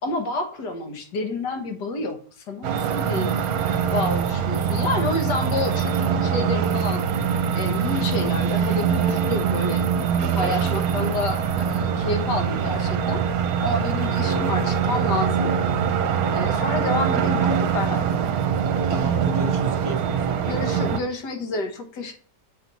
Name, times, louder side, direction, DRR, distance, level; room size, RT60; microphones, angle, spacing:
voice 1, 0.0-2.2 2.5-3.3 3.9-7.0 7.5-9.9 10.3-13.2 13.6-15.5 16.3-18.1 20.4-22.1, left 2 dB, 75° left, 5 dB, 1.8 m, -29 dB
sound 1, 2.6-21.0, right 7 dB, 65° right, 1.1 m, -23 dB
voice 2, 14.2-14.7 18.9-20.5, right 2 dB, 45° right, 4 dB, 1.1 m, -32 dB
7.2 x 6.0 x 4.0 m, 0.43 s
omnidirectional pair, 1.8 m